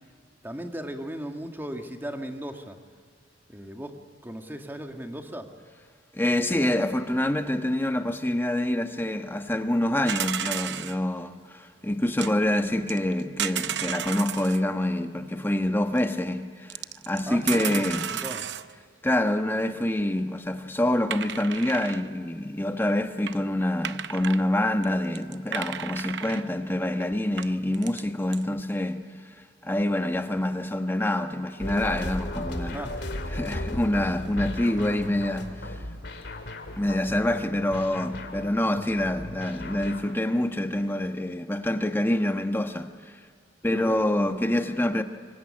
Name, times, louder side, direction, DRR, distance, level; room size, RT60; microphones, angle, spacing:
voice 1, 0.4-2.8 3.5-4.0 4.2-5.5 17.3-18.5 32.7-33.0 43.7-44.1, right 1 dB, 10° right, 1.9 m, -36 dB
voice 2, 6.1-16.8 17.0-18.1 19.0-29.1 29.6-32.8 33.3-35.8 36.8-43.2 43.6-45.0, left 1 dB, 10° left, 1.1 m, -26 dB
sound 1, 10.1-11.0 12.2-12.3 12.9-14.6 15.9-16.0 16.7-18.7 21.1-22.1 22.9-23.0 23.3-23.4 23.8-24.4 24.8-24.9 25.1-26.4 27.0-27.1 27.4-28.0 28.3-28.4, right 9 dB, 65° right, 0.7 m, -33 dB
sound 2, 31.6-40.2, left 1 dB, 65° left, 2.6 m, -36 dB
25.0 x 23.5 x 9.8 m
head